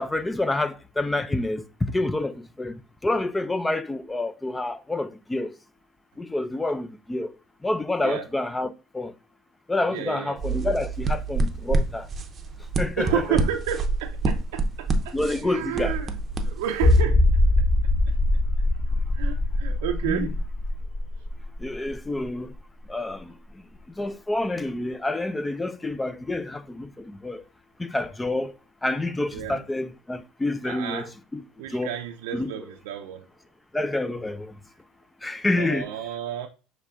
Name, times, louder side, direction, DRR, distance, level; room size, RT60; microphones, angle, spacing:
voice 1, 0.0-5.5 6.2-7.3 7.6-9.1 9.7-12.1 12.8-13.4 15.1-16.0 20.1-20.3 21.6-22.5 22.9-23.3 24.0-27.4 27.8-28.5 28.8-31.0 31.3-31.4 31.7-31.9 32.3-32.5 33.7-34.5 35.2-35.9, left 2 dB, 10° left, 0.4 m, -28 dB
voice 2, 9.9-10.4 13.0-15.1 15.4-16.1 16.4-17.3 18.1-18.2 19.1-20.3 29.3-29.6 30.6-31.1 31.6-33.3 35.5-36.5, right 10 dB, 90° right, 0.5 m, -31 dB
sound 1, 10.4-17.0, right 3 dB, 30° right, 0.7 m, -27 dB
sound 2, 16.8-22.2 22.5-22.6 23.2-23.3, left 1 dB, 35° left, 1.4 m, -22 dB
6.7 x 3.2 x 2.4 m
supercardioid pair, 110°, 0 cm